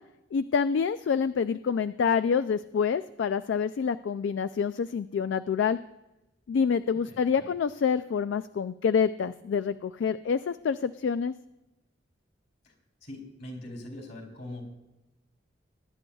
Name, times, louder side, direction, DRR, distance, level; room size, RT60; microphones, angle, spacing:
voice 1, 0.3-5.8 6.5-11.3, left 6 dB, 75° left, 13 dB, 0.3 m, -27 dB
voice 2, 7.0-7.5 12.6-12.7 13.0-14.6, left 1 dB, 55° left, 0 dB, 3.3 m, -42 dB
21.0 x 10.5 x 2.3 m, 0.96 s
head